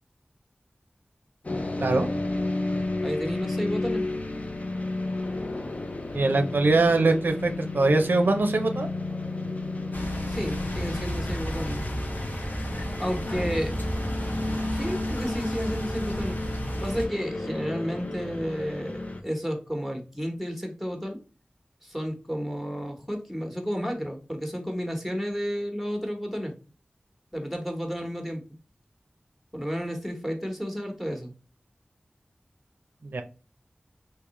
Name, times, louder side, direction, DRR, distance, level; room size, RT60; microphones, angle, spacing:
sound 1, 1.4-19.2, left 2 dB, 45° left, 0.5 m, -32 dB
voice 1, 3.0-4.1 10.3-11.9 13.0-13.7 14.7-16.4 16.8-21.2 21.8-26.5 27.3-28.4 29.5-31.3, equal, ahead, 3 dB, 1.0 m, -32 dB
voice 2, 6.1-8.9 33.0-33.2, right 3 dB, 85° right, 6 dB, 0.5 m, -22 dB
sound 2, 9.9-17.1, equal, 65° left, 1.1 m, -33 dB
3.6 x 2.7 x 3.0 m, 0.35 s
wide cardioid pair, 65°, 3 cm